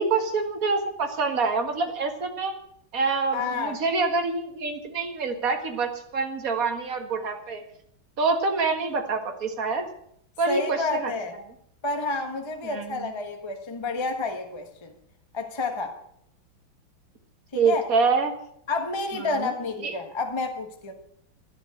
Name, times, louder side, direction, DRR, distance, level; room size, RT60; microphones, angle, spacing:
voice 1, 0.0-2.5 2.9-7.6 8.2-9.9 10.4-11.1 12.6-13.1 17.5-18.3 19.4-19.5 19.8-19.9, right 4 dB, 45° right, 5 dB, 2.1 m, -26 dB
voice 2, 3.3-3.8 10.5-11.3 11.8-14.9 15.3-15.9 17.5-17.8 18.7-20.9, left 3 dB, 15° left, 5 dB, 1.2 m, -29 dB
12.0 x 11.0 x 7.8 m, 0.69 s
omnidirectional pair, 2.3 m